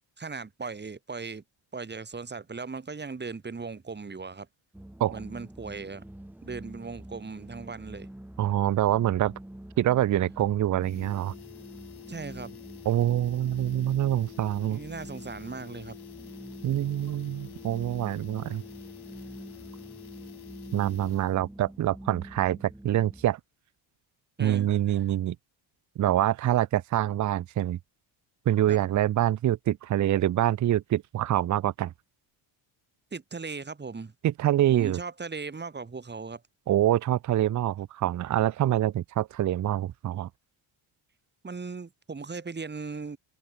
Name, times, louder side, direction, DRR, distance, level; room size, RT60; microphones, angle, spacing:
voice 1, 0.2-1.4 1.7-4.5 5.1-6.0 6.4-8.1 12.1-12.5 14.7-16.0 24.4-24.7 28.7-28.8 33.1-34.1 34.7-36.4 41.4-43.2, right 4 dB, 20° right, 2.9 m, -38 dB
sound 1, 4.7-23.2, right 1 dB, 5° right, 1.4 m, -46 dB
voice 2, 8.4-9.3 9.8-11.3 12.9-14.8 16.6-18.6 20.7-23.4 24.4-25.4 26.0-27.8 28.5-31.9 34.2-35.0 36.7-40.3, right 12 dB, 40° right, 0.6 m, -25 dB
sound 2, 9.9-10.0 10.3-10.4 10.7-21.5 21.8-21.9, left 11 dB, 50° left, 2.1 m, -48 dB
cardioid pair, 130°, 48 cm